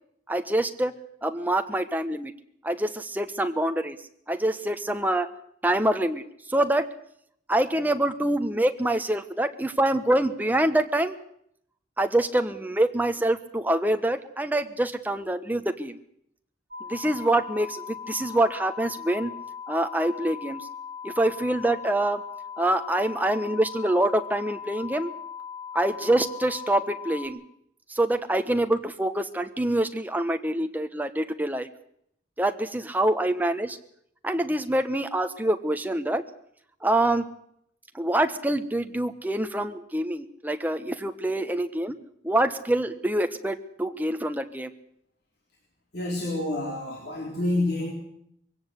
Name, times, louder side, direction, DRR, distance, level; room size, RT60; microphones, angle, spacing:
voice 1, 0.3-2.3 2.6-4.0 4.3-5.3 5.6-6.9 7.5-11.1 12.0-16.0 16.9-19.3 19.7-20.7 21.0-22.2 22.6-25.1 25.7-27.4 27.9-31.7 32.4-33.8 34.2-36.2 36.8-37.3 37.9-41.9 42.2-44.7, right 1 dB, 10° right, 7 dB, 1.1 m, -25 dB
sound 1, 16.7-27.3, left 7 dB, 50° right, 2.9 m, -39 dB
voice 2, 45.9-47.9, left 2 dB, 55° left, -1 dB, 4.0 m, -28 dB
22.5 x 17.0 x 8.1 m, 0.71 s
head